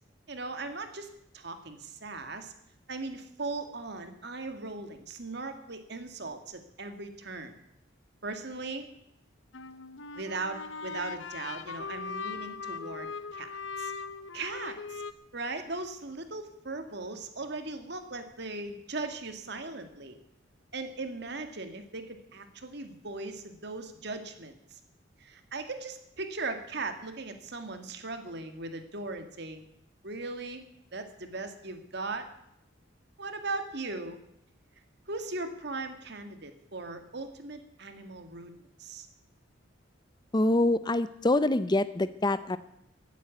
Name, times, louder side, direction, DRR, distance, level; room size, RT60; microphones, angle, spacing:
voice 1, 0.3-2.5 2.9-7.5 8.2-8.9 10.1-13.9 14.3-15.0 15.3-20.2 20.7-24.8 25.2-29.6 30.0-30.6 30.9-32.3 33.2-34.2 35.1-38.5 38.8-39.1, right 3 dB, 60° right, 7 dB, 2.0 m, -38 dB
sound 1, 9.5-15.1, left 5 dB, 80° left, 1.0 m, -39 dB
voice 2, 40.3-42.6, left 2 dB, 20° left, 14 dB, 0.6 m, -25 dB
15.5 x 9.3 x 9.3 m, 0.78 s
head